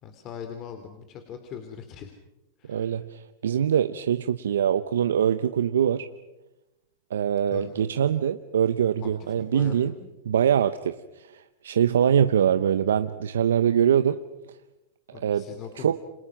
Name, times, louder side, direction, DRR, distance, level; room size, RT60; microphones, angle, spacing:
voice 1, 0.0-2.1 2.6-3.0 7.5-7.8 9.0-10.1 15.1-16.0, left 7 dB, 40° left, 6 dB, 3.0 m, -41 dB
voice 2, 2.7-6.1 7.1-9.9 10.3-14.2 15.2-15.4 15.8-16.0, right 9 dB, 85° right, 11 dB, 0.9 m, -23 dB
29.0 x 27.0 x 5.9 m, 0.99 s
hypercardioid pair, 110°, 0 cm